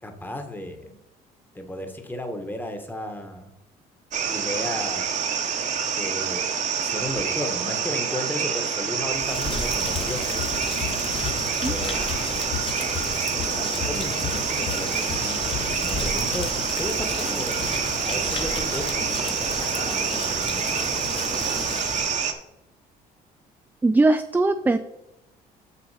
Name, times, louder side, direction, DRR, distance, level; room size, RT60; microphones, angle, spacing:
voice 1, 0.0-0.9 1.5-3.5 4.3-5.2 5.9-10.5 11.6-12.0 13.5-16.5 16.8-17.6 18.0-20.8, left 1 dB, 10° left, 6 dB, 1.2 m, -34 dB
sound 1, 4.1-22.3, right 7 dB, 45° right, 1.0 m, -27 dB
Rain, 9.1-22.3, left 3 dB, 35° left, 1.2 m, -33 dB
sound 2, 9.8-16.8, left 12 dB, 55° left, 0.4 m, -36 dB
voice 2, 23.8-24.8, right 2 dB, 10° right, 9 dB, 0.3 m, -20 dB
7.0 x 6.2 x 4.9 m, 0.89 s
cardioid pair, 110°, 17 cm